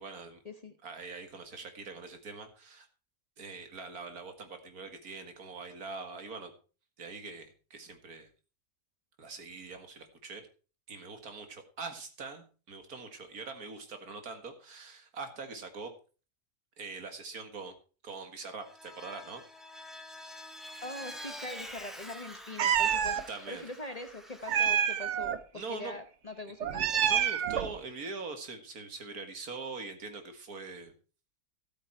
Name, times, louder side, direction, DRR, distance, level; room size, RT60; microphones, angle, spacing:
voice 1, 0.0-0.4 0.8-2.9 3.4-6.5 7.0-8.3 9.2-10.4 10.9-15.9 16.8-17.7 18.0-19.4 20.2-20.4 23.3-23.6 25.5-26.0 27.0-30.9, right 4 dB, 80° right, 6 dB, 2.3 m, -43 dB
Vehicle, 18.6-25.0, left 1 dB, ahead, 1.4 m, -47 dB
voice 2, 20.8-27.0, left 2 dB, 30° left, 8 dB, 1.0 m, -43 dB
Meow, 22.6-23.2 24.5-25.4 26.6-27.7, right 9 dB, 60° right, 1.0 m, -27 dB
13.0 x 8.7 x 4.5 m, 0.36 s
omnidirectional pair, 1.5 m